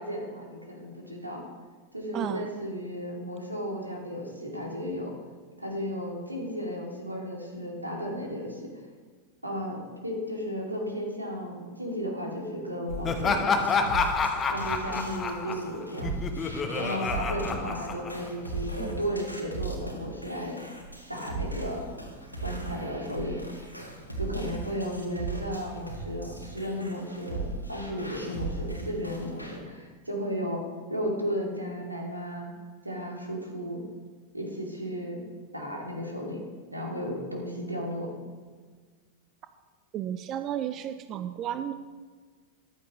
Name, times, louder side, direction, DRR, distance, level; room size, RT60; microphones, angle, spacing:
voice 1, 0.0-1.5 1.9-5.1 5.6-8.7 9.4-13.6 14.5-16.1 16.7-20.6 21.1-21.9 22.4-23.5 24.2-30.6 30.9-32.5 32.8-33.8 34.3-35.2 35.5-36.4 36.7-38.1, equal, 85° right, -1 dB, 2.5 m, -34 dB
voice 2, 2.1-2.5 18.8-19.0 39.9-41.7, right 10 dB, 35° right, 10 dB, 0.5 m, -33 dB
sound 1, 12.9-29.6, right 3 dB, 90° left, 1.8 m, -38 dB
Laughter, 13.0-18.5, left 4 dB, 25° left, 1.1 m, -28 dB
14.5 x 11.5 x 3.1 m, 1.5 s
figure-of-eight pair, 90°, 0 cm